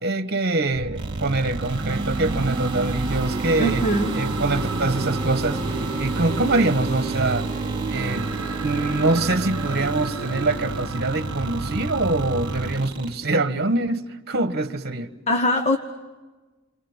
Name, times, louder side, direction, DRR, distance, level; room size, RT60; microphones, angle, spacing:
voice 1, 0.0-3.9 4.1-5.6 6.0-7.5 7.9-8.3 8.6-15.1, right 2 dB, 50° right, 1.4 m, -24 dB
sound 1, 0.7-12.7, right 3 dB, 70° right, 1.0 m, -31 dB
sound 2, 1.0-13.1, right 2 dB, 25° right, 3.3 m, -31 dB
voice 2, 3.6-4.2 15.3-15.8, equal, 30° left, 1.2 m, -21 dB
sound 3, 4.0-10.9, right 3 dB, 5° left, 3.0 m, -37 dB
29.5 x 27.0 x 7.4 m
head